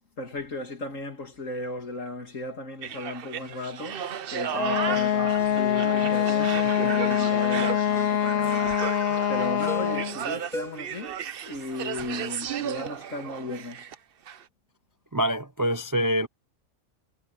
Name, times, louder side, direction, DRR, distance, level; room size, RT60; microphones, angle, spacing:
voice 1, 0.2-8.9 9.3-13.9, left 2 dB, 75° left, 3.2 m, -36 dB
sound 1, 2.8-14.0 14.3-14.4, right 9 dB, 50° right, 0.8 m, -34 dB
Wind instrument woodwind instrument, 4.5-10.2, left 10 dB, 60° left, 0.7 m, -24 dB
Ringtone, 4.5-4.7 5.4-5.6 6.2-6.5 7.1-7.4 8.0-8.2 8.8-9.2 9.7-10.1 10.5-11.0 11.3-11.4, equal, ahead, 4.9 m, -40 dB
voice 2, 15.1-16.3, equal, 30° right, 0.3 m, -25 dB
omnidirectional pair, 1.4 m